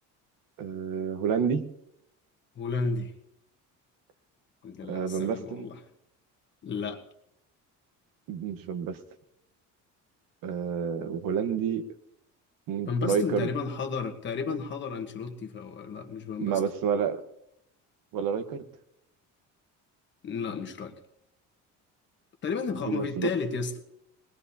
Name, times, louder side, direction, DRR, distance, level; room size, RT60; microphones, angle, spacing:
voice 1, 0.6-1.6 4.9-5.7 8.3-9.0 10.4-11.8 12.7-13.5 16.4-17.2 18.1-18.6 22.9-23.3, right 7 dB, 90° right, 9 dB, 1.2 m, -29 dB
voice 2, 2.5-3.1 4.6-5.8 6.6-7.0 12.9-16.6 20.2-21.0 22.4-23.7, left 5 dB, 35° left, 6 dB, 1.2 m, -32 dB
22.0 x 20.0 x 2.8 m, 0.79 s
cardioid pair, 165°, 32 cm